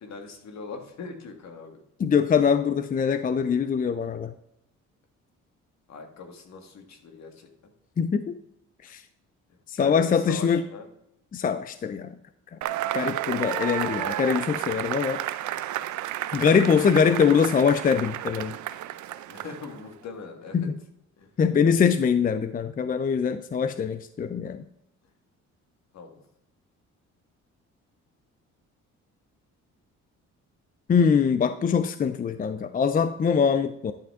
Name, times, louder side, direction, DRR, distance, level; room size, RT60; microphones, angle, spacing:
voice 1, 0.0-1.8 5.9-7.5 9.8-10.9 19.3-20.7 21.2-21.3 25.9-26.2, left 4 dB, 60° left, 4 dB, 1.8 m, -41 dB
voice 2, 2.0-4.3 8.0-8.4 8.8-9.0 9.7-10.6 11.3-12.1 12.9-15.2 16.3-18.5 20.5-20.8 21.4-24.6 30.9-33.9, left 6 dB, 30° left, 11 dB, 0.4 m, -23 dB
Cheering / Applause / Crowd, 12.6-19.8, right 13 dB, 75° right, 0.5 m, -31 dB
11.5 x 5.6 x 3.6 m, 0.82 s
cardioid pair, 90°, 30 cm